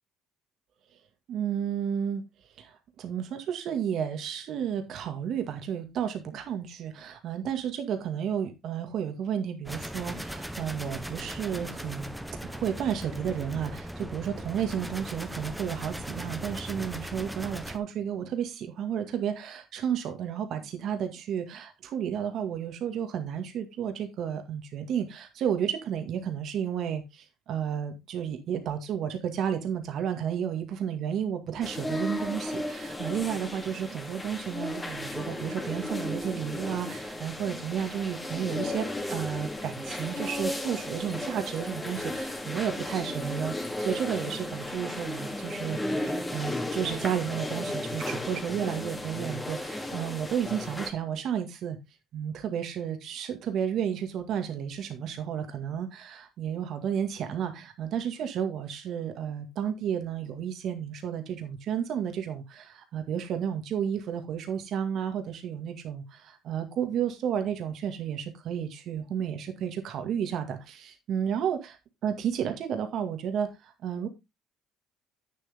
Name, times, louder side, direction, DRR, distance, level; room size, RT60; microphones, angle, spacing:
voice 1, 1.3-2.2 2.6-12.1 12.4-51.8 52.1-71.8 72.0-74.1, right 8 dB, 60° right, 2.0 m, -32 dB
sound 1, 9.6-17.8, equal, 5° right, 1.1 m, -38 dB
sound 2, 31.6-50.9, left 1 dB, 15° left, 2.4 m, -35 dB
9.1 x 7.3 x 3.7 m
supercardioid pair, 90°, 0 cm